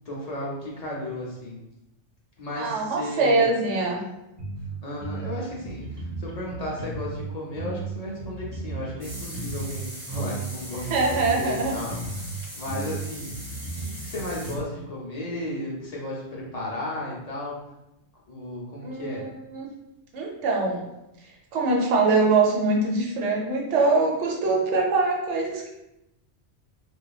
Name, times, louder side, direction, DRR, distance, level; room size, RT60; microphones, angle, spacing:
voice 1, 0.1-1.6 2.4-3.4 4.8-12.3 12.6-17.6 18.3-19.2, left 1 dB, 50° left, -4 dB, 0.5 m, -34 dB
voice 2, 2.6-4.0 10.9-11.7 18.8-19.7 20.1-20.8 21.5-25.7, right 3 dB, 85° right, -1 dB, 1.0 m, -23 dB
sound 1, 4.4-4.7 5.0-7.2 7.6-9.8 10.1-12.3 12.7-14.6, right 2 dB, 45° right, 0.3 m, -35 dB
sound 2, 9.0-14.6, equal, 25° right, 0.8 m, -40 dB
2.8 x 2.2 x 2.3 m, 0.88 s
omnidirectional pair, 1.2 m